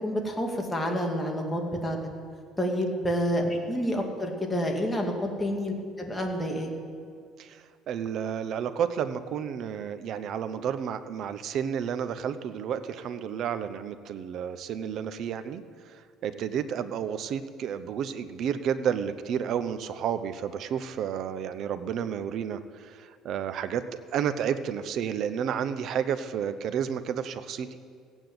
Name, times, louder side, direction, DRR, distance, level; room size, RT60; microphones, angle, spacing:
voice 1, 0.0-2.0 2.6-5.1 5.4-6.7, equal, 10° left, 1 dB, 2.2 m, -28 dB
voice 2, 7.4-23.8 24.1-27.8, right 8 dB, 55° right, 11 dB, 0.8 m, -31 dB
15.5 x 9.1 x 7.9 m, 2.2 s
cardioid pair, 130°, 0 cm